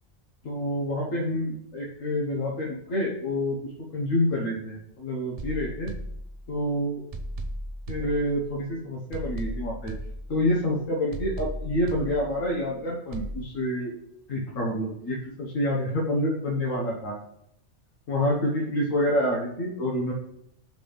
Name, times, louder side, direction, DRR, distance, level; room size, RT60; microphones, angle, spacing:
voice 1, 0.4-5.9 6.5-7.0 7.9-9.9 10.3-13.9 14.3-17.1 18.1-20.1, left 1 dB, 85° left, -4 dB, 1.4 m, -27 dB
sound 1, 5.4-6.7 7.1-8.7 9.1-10.7 11.1-12.7 13.1-13.4, right 1 dB, 50° right, 0.4 m, -36 dB
5.9 x 3.4 x 5.8 m, 0.76 s
omnidirectional pair, 1.3 m